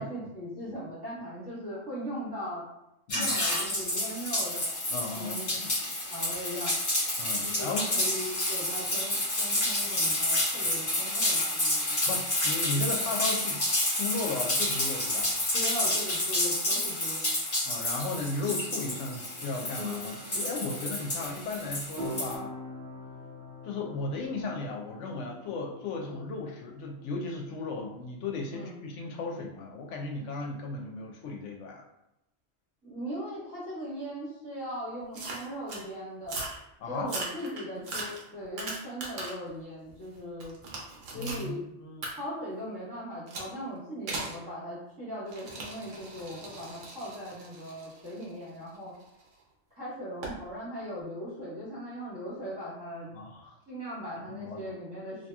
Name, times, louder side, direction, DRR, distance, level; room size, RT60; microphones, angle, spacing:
voice 1, 0.0-2.7 3.1-4.7 5.1-6.8 7.4-12.1 15.5-17.3 26.0-26.3 28.5-28.8 32.8-36.4 36.9-40.5 41.1-41.6 42.1-48.9 49.7-53.1 53.7-55.3, equal, 20° right, -9 dB, 1.5 m, -39 dB
sound 1, 3.1-22.3, left 1 dB, 55° left, 1.4 m, -29 dB
voice 2, 4.9-5.7 7.2-7.8 12.1-13.6 13.9-15.3 17.6-22.5 23.6-31.8 36.8-37.1 37.4-37.5 41.1-42.1 53.1-53.5 54.3-54.6, left 3 dB, 80° left, 1 dB, 0.9 m, -35 dB
sound 2, 18.6-28.3, left 1 dB, 50° right, 0.7 m, -45 dB
sound 3, 35.1-35.8 36.2-36.6 37.0-39.5 39.9-41.5 42.0-42.1 43.3-43.5 44.1-44.4 45.3-49.2 50.2-50.4, right 2 dB, 80° right, 1.0 m, -39 dB
2.8 x 2.5 x 2.3 m, 0.86 s
omnidirectional pair, 1.2 m